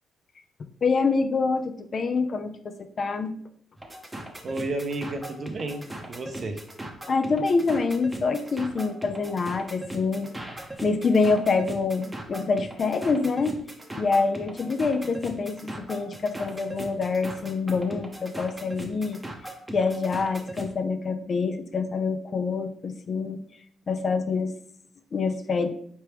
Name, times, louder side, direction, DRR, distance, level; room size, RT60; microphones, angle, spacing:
voice 1, 0.8-2.5 3.0-3.3 7.1-10.3 10.8-13.5 14.0-19.2 19.7-23.4 23.9-24.5 25.1-25.7, left 4 dB, 45° left, 9 dB, 0.5 m, -26 dB
sound 1, 3.8-20.7, right 1 dB, 15° right, 0.8 m, -39 dB
voice 2, 4.4-6.6, right 2 dB, 45° right, 5 dB, 0.7 m, -32 dB
4.5 x 3.3 x 3.0 m, 0.62 s
cardioid pair, 90°, 0 cm